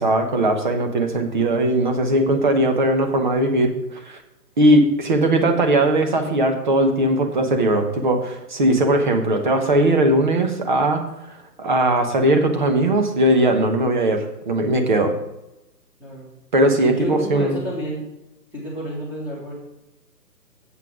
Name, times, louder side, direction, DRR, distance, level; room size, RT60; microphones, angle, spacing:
voice 1, 0.0-4.2 4.6-11.0 11.6-15.1 16.5-17.6, right 1 dB, 30° right, 5 dB, 1.0 m, -19 dB
voice 2, 16.0-16.3 16.9-18.0 18.5-19.5, right 1 dB, 5° right, -6 dB, 1.8 m, -30 dB
7.9 x 5.8 x 7.2 m, 0.92 s
hypercardioid pair, 165°, 50 cm